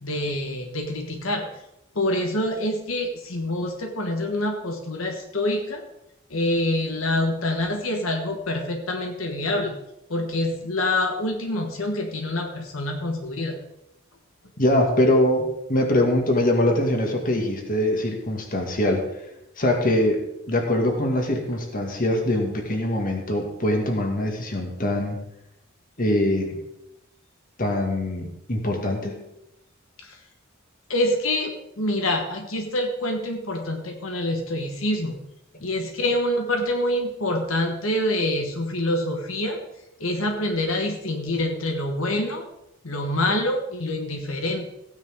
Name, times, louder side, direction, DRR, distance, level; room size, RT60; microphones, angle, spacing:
voice 1, 0.0-1.4 1.9-5.8 6.3-9.8 10.1-13.6 30.0-30.2 30.9-35.2 35.6-39.6 40.0-42.5 42.8-44.6, left 1 dB, 80° left, 3 dB, 1.4 m, -26 dB
voice 2, 14.6-19.1 19.6-25.2 26.0-26.6 27.6-29.2, left 1 dB, 40° left, 2 dB, 2.0 m, -23 dB
15.5 x 9.6 x 3.7 m, 0.84 s
head